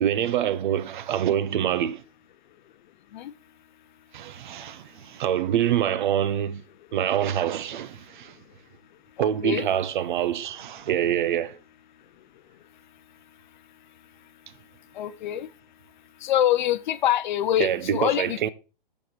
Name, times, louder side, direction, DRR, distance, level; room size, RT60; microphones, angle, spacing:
voice 1, 0.0-2.0 4.1-6.6 6.9-8.4 9.2-11.6 17.6-18.5, right 10 dB, 55° right, 0.6 m, -25 dB
voice 2, 9.2-9.7 15.0-15.5 16.2-18.5, left 12 dB, 50° left, 0.6 m, -25 dB
6.9 x 4.9 x 4.1 m
hypercardioid pair, 135°, 29 cm